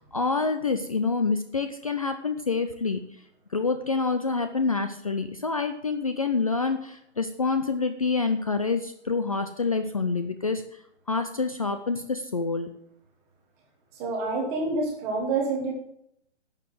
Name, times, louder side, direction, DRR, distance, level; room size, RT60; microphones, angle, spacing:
voice 1, 0.0-3.0 3.5-10.6 11.1-12.7, left 4 dB, 30° left, 8 dB, 0.6 m, -27 dB
voice 2, 14.0-15.7, right 3 dB, 5° right, 0 dB, 1.0 m, -27 dB
11.5 x 6.9 x 7.7 m, 0.74 s
hypercardioid pair, 180°, 35 cm